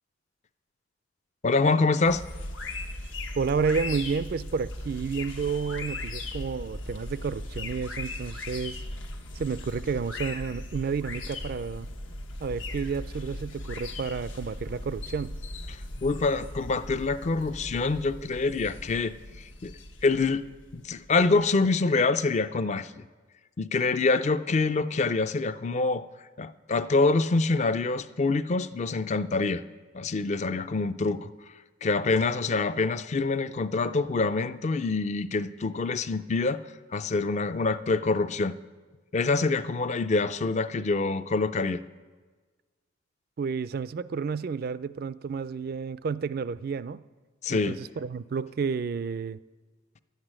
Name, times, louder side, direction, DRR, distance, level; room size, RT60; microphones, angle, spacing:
voice 1, 1.4-2.2 15.7-19.1 19.6-19.7 20.0-20.4 20.7-23.0 23.6-26.0 26.4-29.6 29.9-31.3 31.8-36.6 36.9-38.6 39.1-41.8 47.4-47.8, left 3 dB, 35° left, 13 dB, 0.4 m, -26 dB
sound 1, 2.0-21.4, left 2 dB, 80° left, 1.1 m, -38 dB
voice 2, 3.4-8.8 9.4-11.9 12.4-15.3 43.4-47.0 47.5-49.4, right 5 dB, 50° right, 16 dB, 0.4 m, -31 dB
11.0 x 8.1 x 8.8 m, 1.4 s
head